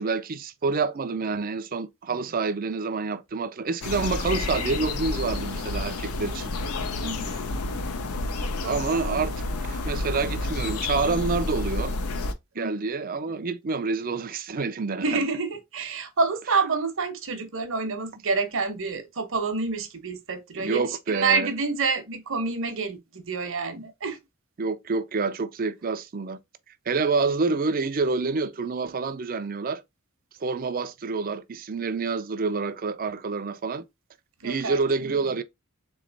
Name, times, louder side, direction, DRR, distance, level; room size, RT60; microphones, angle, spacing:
voice 1, 0.0-6.5 8.7-9.3 9.6-11.9 12.6-15.2 20.5-21.5 24.6-26.4 26.9-29.8 30.4-33.8 34.4-35.4, right 4 dB, 40° right, 0.4 m, -27 dB
sound 1, 3.8-12.3, left 2 dB, 90° left, 0.7 m, -30 dB
voice 2, 7.0-7.6 8.4-9.2 12.5-12.8 15.0-24.2 34.4-34.8, right 4 dB, 60° right, 0.9 m, -28 dB
3.8 x 3.2 x 3.8 m
head